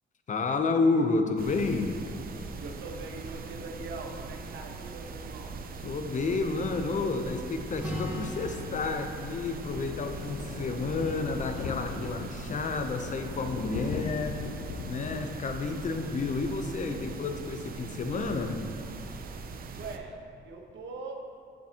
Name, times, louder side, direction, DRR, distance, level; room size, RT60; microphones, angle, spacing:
voice 1, 0.3-2.0 5.8-14.5 14.9-18.6, left 3 dB, 40° left, 6 dB, 0.7 m, -30 dB
sound 1, 1.4-20.0, right 4 dB, 45° right, 0.5 m, -41 dB
voice 2, 2.6-5.6 19.7-20.2 20.4-21.2, right 3 dB, 65° right, 2 dB, 1.1 m, -42 dB
Acoustic guitar, 7.8-11.5, left 1 dB, 10° right, 1.3 m, -41 dB
Thunder, 8.2-17.6 17.9-18.2 18.5-18.6 18.8-18.9, left 6 dB, 80° left, 0.4 m, -41 dB
7.4 x 7.2 x 2.9 m, 2.5 s
cardioid pair, 90°, 20 cm